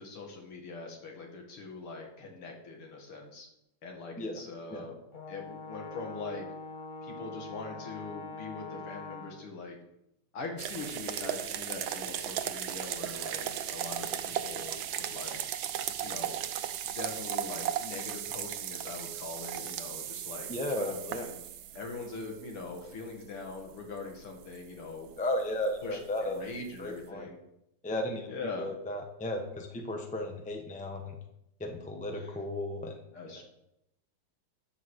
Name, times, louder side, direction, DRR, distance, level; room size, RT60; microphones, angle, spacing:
voice 1, 0.0-3.5 3.8-4.9 5.3-6.4 7.0-9.8 10.3-15.4 16.0-16.4 16.9-20.5 20.7-21.4 21.7-25.1 25.8-27.4 28.3-28.7 32.1-32.3 33.1-33.4, left 3 dB, 80° left, 2 dB, 2.9 m, -42 dB
Brass instrument, 5.1-9.5, left 3 dB, 50° left, 0.5 m, -43 dB
sound 1, 10.6-27.1, right 10 dB, 70° right, 1.4 m, -37 dB
voice 2, 20.5-21.3 25.2-26.4 26.8-27.3 27.8-28.3 28.6-31.2 31.6-33.0 33.3-33.4, left 1 dB, 5° left, 4 dB, 0.7 m, -34 dB
13.0 x 5.1 x 6.4 m, 0.83 s
omnidirectional pair, 2.4 m